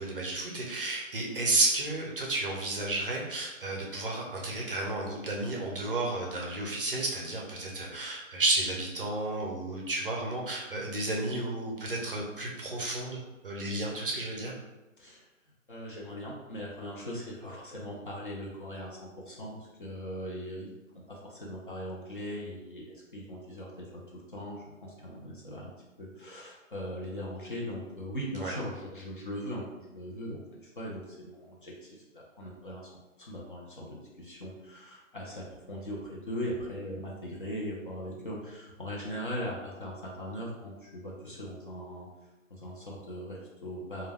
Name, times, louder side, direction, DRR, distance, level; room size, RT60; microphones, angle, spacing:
voice 1, 0.0-13.2 13.4-14.5 28.4-28.5, right 2 dB, 45° right, -1 dB, 0.5 m, -32 dB
voice 2, 15.7-19.0 19.3-20.7 21.1-25.7 26.0-32.9 33.2-42.1 42.5-44.1, equal, 40° left, -3 dB, 0.5 m, -40 dB
2.2 x 2.1 x 3.3 m, 1.0 s
hypercardioid pair, 165°, 40 cm